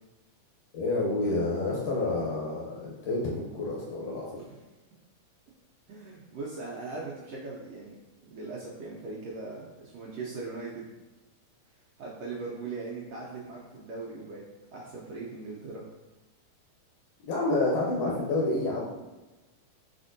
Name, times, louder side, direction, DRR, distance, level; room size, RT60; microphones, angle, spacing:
voice 1, 0.7-4.4 17.2-18.8, left 2 dB, 70° left, -3 dB, 1.6 m, -29 dB
voice 2, 5.9-8.0 8.3-10.9 12.0-14.4 14.7-15.9 18.1-18.2, right 3 dB, 85° right, -4 dB, 1.4 m, -39 dB
4.3 x 4.2 x 2.6 m, 1.1 s
omnidirectional pair, 3.6 m